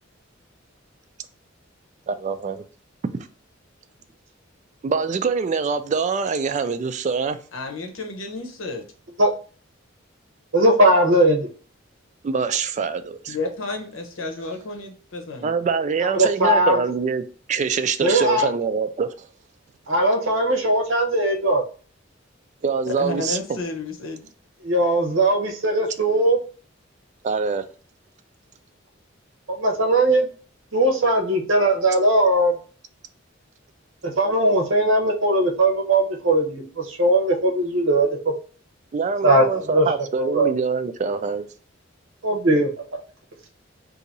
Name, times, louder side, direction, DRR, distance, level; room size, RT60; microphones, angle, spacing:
voice 1, 2.1-2.6 3.1-3.3 4.8-7.4 12.2-13.4 15.4-19.3 22.6-23.4 27.2-27.6 38.9-41.4, right 5 dB, 35° right, 0.3 m, -24 dB
voice 2, 7.5-8.8 13.3-15.5 23.0-24.2, left 2 dB, 85° left, 0.9 m, -31 dB
voice 3, 10.5-11.5 16.2-16.8 18.0-18.4 19.9-21.6 24.6-26.4 29.6-30.3 30.7-32.5 34.2-36.6 37.0-38.1 39.2-39.4 39.7-39.8 40.3-40.5 42.2-42.7, right 1 dB, 75° right, 0.8 m, -19 dB
2.8 x 2.6 x 4.0 m
head